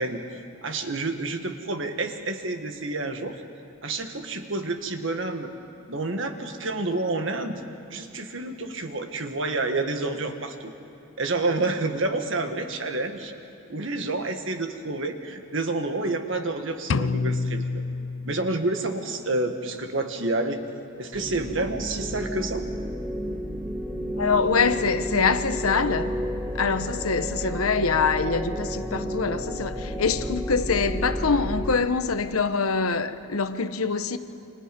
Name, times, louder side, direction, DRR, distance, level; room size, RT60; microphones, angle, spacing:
voice 1, 0.0-3.4 3.8-5.5 5.9-7.6 7.9-10.7 11.2-13.3 13.7-17.8 18.2-20.6 21.0-22.6, right 2 dB, 60° right, 1.8 m, -29 dB
sound 1, 16.9-18.9, left 4 dB, 60° left, 0.5 m, -28 dB
sound 2, 21.1-31.8, equal, 5° right, 3.2 m, -31 dB
voice 2, 24.2-26.1 26.5-34.2, left 5 dB, 85° left, 1.1 m, -24 dB
30.0 x 26.5 x 5.4 m
head